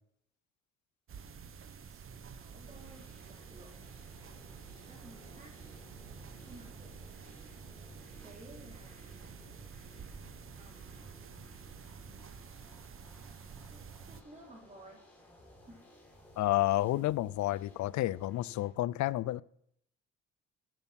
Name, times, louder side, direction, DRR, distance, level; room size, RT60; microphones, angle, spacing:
sound 1, 1.1-14.2, right 6 dB, 45° right, 1.0 m, -50 dB
voice 1, 1.9-3.7 4.9-5.6 6.4-6.9 8.2-9.2 10.6-11.4 13.7-15.0 15.6-15.8, right 1 dB, 25° right, 3.5 m, -55 dB
sound 2, 2.7-18.7, left 1 dB, 5° left, 4.0 m, -58 dB
voice 2, 16.4-19.4, left 15 dB, 70° left, 0.5 m, -30 dB
12.5 x 7.1 x 5.9 m
cardioid pair, 90°, 30 cm